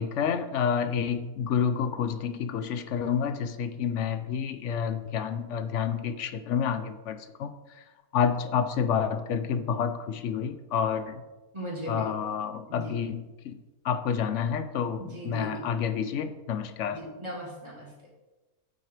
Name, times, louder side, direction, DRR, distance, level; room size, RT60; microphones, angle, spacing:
voice 1, 0.0-7.5 8.1-11.2 11.9-17.0, left 7 dB, 65° left, 11 dB, 0.8 m, -29 dB
voice 2, 11.5-12.1 12.7-13.0 15.0-15.7 16.9-17.9, right 1 dB, 20° right, -5 dB, 2.7 m, -38 dB
9.1 x 7.6 x 3.3 m, 1.1 s
omnidirectional pair, 1.6 m